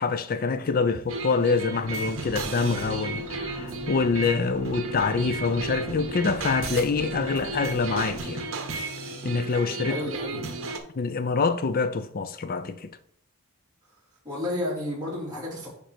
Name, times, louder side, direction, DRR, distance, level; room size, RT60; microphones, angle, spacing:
voice 1, 0.0-8.5 9.2-10.0 11.0-12.9, left 4 dB, 40° left, 0.5 m, -26 dB
sound 1, 1.1-10.8, right 3 dB, 65° right, 1.0 m, -34 dB
sound 2, 1.8-8.2, right 1 dB, 75° left, 1.7 m, -40 dB
voice 2, 9.8-10.5 14.2-15.7, left 1 dB, 20° right, 3.2 m, -31 dB
10.0 x 3.4 x 4.4 m
head